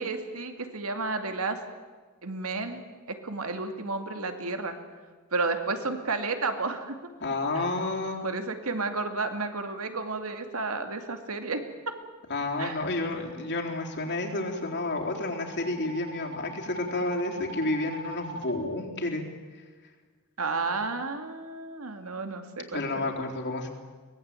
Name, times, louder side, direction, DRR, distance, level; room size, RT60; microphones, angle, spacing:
voice 1, 0.0-1.6 2.2-2.8 3.1-4.8 5.3-7.0 7.5-7.6 8.2-11.9 12.6-12.9 20.4-23.1, right 3 dB, 70° right, 7 dB, 2.5 m, -32 dB
voice 2, 7.2-8.2 12.3-19.2 22.7-23.7, left 2 dB, 50° left, 0 dB, 4.0 m, -30 dB
sound 1, 12.8-18.5, right 1 dB, 55° right, 4.2 m, -43 dB
23.5 x 19.5 x 9.1 m, 1.4 s
head